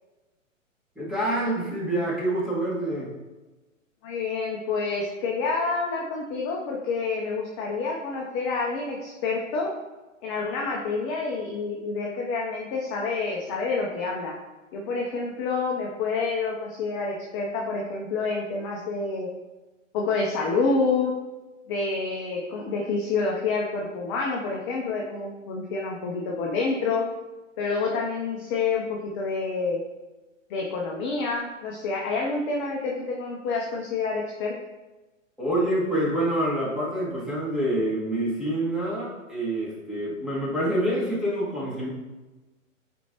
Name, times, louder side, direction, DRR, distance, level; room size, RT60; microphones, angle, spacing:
voice 1, 1.0-3.1 35.4-41.9, right 1 dB, ahead, -8 dB, 1.8 m, -26 dB
voice 2, 4.0-9.7 10.2-14.4 14.7-19.3 19.9-21.1 21.7-27.0 27.6-29.8 30.5-34.5, left 4 dB, 20° left, -1 dB, 0.6 m, -28 dB
8.1 x 4.4 x 2.9 m, 1.1 s
figure-of-eight pair, 120°, 39 cm